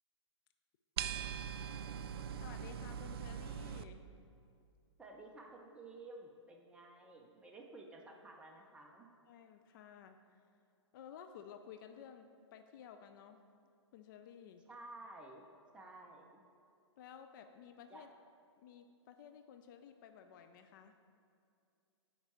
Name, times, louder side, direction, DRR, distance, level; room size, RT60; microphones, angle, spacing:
sound 1, 1.0-3.8, right 8 dB, 55° right, 0.4 m, -41 dB
voice 1, 2.4-4.0 9.3-10.4 10.9-13.4 13.9-14.6 17.0-18.1 18.6-21.0, left 8 dB, 45° left, 7 dB, 0.4 m, -54 dB
voice 2, 5.0-9.1 14.7-15.4 15.7-16.4 17.9-18.1, right 2 dB, 5° right, 0 dB, 0.6 m, -53 dB
9.6 x 4.6 x 4.3 m, 2.4 s
figure-of-eight pair, 110°, 15 cm